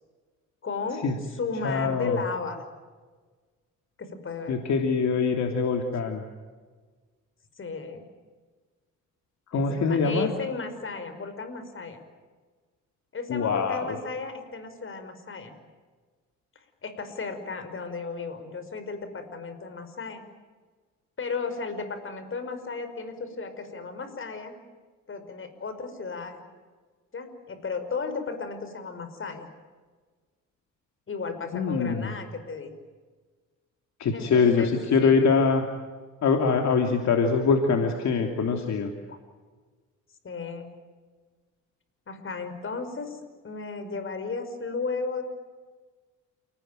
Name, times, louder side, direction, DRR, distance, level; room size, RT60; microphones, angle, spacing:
voice 1, 0.6-2.6 4.0-4.6 7.6-8.0 9.5-12.0 13.1-15.5 16.8-20.2 21.2-24.6 25.1-26.4 27.1-29.5 31.1-32.7 34.1-34.7 35.0-35.1 39.1-39.2 40.2-40.7 42.1-45.2, left 4 dB, 45° left, 9 dB, 5.5 m, -34 dB
voice 2, 1.6-2.2 4.5-6.2 9.5-10.3 13.3-13.9 31.5-32.1 34.0-35.6 36.2-38.9, left 5 dB, 65° left, 3 dB, 3.0 m, -23 dB
29.0 x 19.0 x 9.2 m, 1.4 s
cardioid pair, 90°, 30 cm